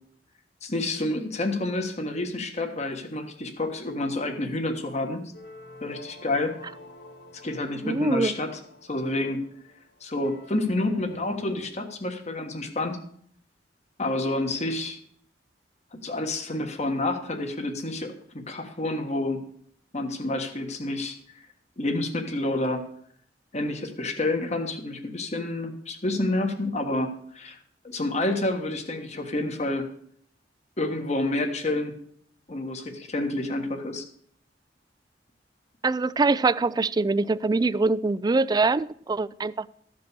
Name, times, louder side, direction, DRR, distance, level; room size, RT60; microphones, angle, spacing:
voice 1, 0.6-5.2 5.8-6.6 7.4-8.5 8.9-9.4 10.0-13.0 14.0-15.0 15.9-19.4 19.9-21.2 21.8-22.8 23.5-27.6 27.8-29.9 30.8-31.9 32.5-34.0, left 2 dB, 40° left, 5 dB, 1.4 m, -29 dB
sound 1, 5.3-11.7, left 2 dB, 80° left, 1.8 m, -48 dB
voice 2, 7.8-8.3 35.8-39.7, right 3 dB, 25° right, 17 dB, 0.3 m, -24 dB
14.0 x 5.2 x 6.8 m, 0.64 s
head